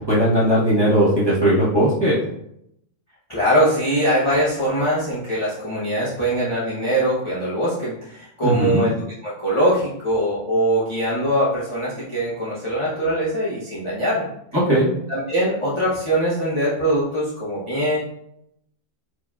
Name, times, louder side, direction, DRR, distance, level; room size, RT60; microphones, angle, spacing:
voice 1, 0.1-2.2 8.4-8.8 14.7-14.9, right 1 dB, 20° right, -9 dB, 1.2 m, -18 dB
voice 2, 3.3-14.3 15.1-18.0, equal, 25° left, -9 dB, 0.8 m, -22 dB
4.5 x 2.9 x 2.3 m, 0.75 s
omnidirectional pair, 1.4 m